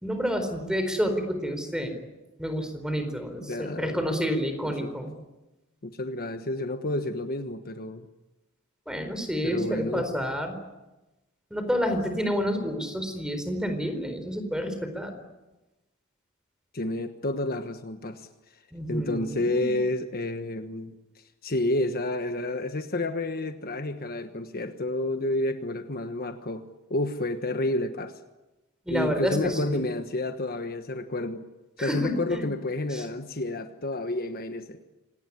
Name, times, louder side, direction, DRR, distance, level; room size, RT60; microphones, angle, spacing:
voice 1, 0.0-1.9 2.4-5.1 8.9-10.6 11.5-15.2 18.7-19.8 28.9-29.8 31.8-32.5 32.9-33.0, equal, 5° right, 8 dB, 4.3 m, -29 dB
voice 2, 3.4-4.1 4.6-5.0 5.8-8.1 9.4-10.1 16.7-18.3 18.9-28.2 28.9-31.4 31.8-34.8, left 2 dB, 45° left, 8 dB, 1.3 m, -30 dB
27.0 x 19.0 x 9.9 m, 1.1 s
head